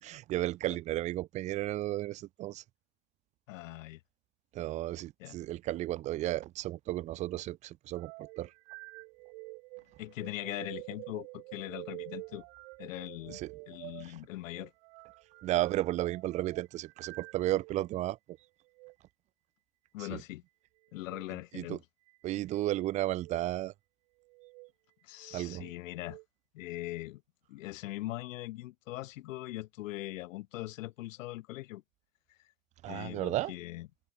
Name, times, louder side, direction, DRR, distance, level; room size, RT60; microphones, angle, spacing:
voice 1, 0.0-2.6 4.5-8.5 13.3-13.5 14.0-14.2 15.4-18.2 20.0-20.2 21.5-21.8 22.2-23.7 25.3-25.7 32.8-33.5, right 15 dB, 20° right, 0.4 m, -33 dB
voice 2, 3.5-4.0 5.2-5.4 10.0-12.4 12.8-13.4 13.7-14.7 19.9-20.4 20.9-21.8 25.0-26.2 26.5-27.2 27.5-31.8 32.9-33.9, left 17 dB, 65° left, 3.7 m, -41 dB
sound 1, 8.0-17.9 18.7-18.9 20.9-21.3 22.1-22.6 23.1-23.4 24.2-24.7 25.2-26.2, right 29 dB, 55° right, 4.7 m, -48 dB
hypercardioid pair, 120°, 42 cm